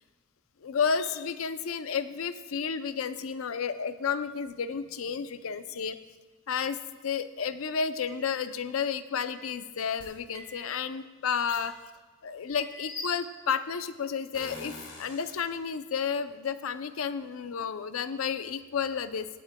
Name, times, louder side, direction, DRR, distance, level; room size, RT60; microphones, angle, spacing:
voice 1, 0.6-6.0 6.5-11.7 12.2-19.3, left 6 dB, 80° left, 12 dB, 0.5 m, -31 dB
sound 1, 8.1-8.3 9.2-9.5 10.3-10.7 11.5-11.8 12.6-12.9, right 3 dB, 85° right, 2.9 m, -50 dB
sound 2, 10.0-10.1 11.5-11.6 12.7-13.5 14.3-15.6, left 2 dB, 60° left, 1.9 m, -42 dB
21.0 x 8.2 x 2.2 m, 1.3 s
head